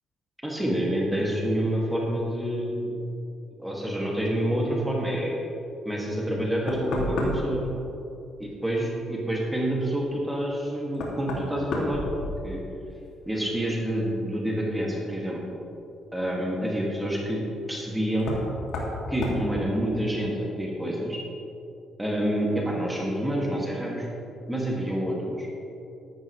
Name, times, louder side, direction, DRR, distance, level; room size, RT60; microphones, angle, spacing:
voice 1, 0.4-3.0 3.6-5.4 5.9-7.7 8.4-12.6 13.2-15.4 16.1-17.4 17.7-18.4 19.1-21.2 22.0-24.1 24.5-25.4, right 1 dB, 5° right, -3 dB, 2.1 m, -28 dB
Knock, 6.2-6.3 6.7-7.6 10.1-10.2 10.9-12.8 13.1-13.7 15.4-15.5 18.2-18.5 18.7-19.0 19.2-19.4, left 2 dB, 80° left, 2.3 m, -31 dB
14.0 x 12.0 x 3.2 m, 2.9 s
cardioid pair, 90°, 0 cm